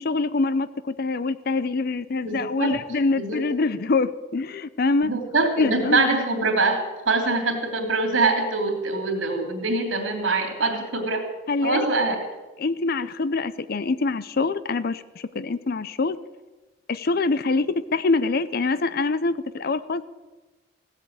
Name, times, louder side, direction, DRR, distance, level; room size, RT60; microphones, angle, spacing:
voice 1, 0.0-5.1 5.6-6.1 11.5-11.9 12.6-16.2 16.9-20.1, left 3 dB, 50° left, 15 dB, 0.6 m, -25 dB
voice 2, 2.2-2.8 3.2-3.4 5.0-11.3 11.6-12.2, right 3 dB, 85° right, 3 dB, 3.0 m, -24 dB
16.0 x 8.1 x 8.7 m, 1.2 s
head